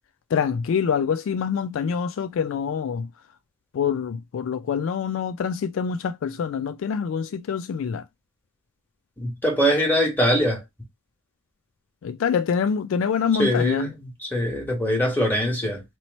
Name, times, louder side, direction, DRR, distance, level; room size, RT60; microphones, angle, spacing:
voice 1, 0.3-3.1 3.7-8.0 12.0-13.9, left 7 dB, 65° left, 0.3 m, -25 dB
voice 2, 9.2-10.6 13.4-15.8, equal, 10° left, 1.4 m, -23 dB
3.0 x 2.9 x 4.0 m
head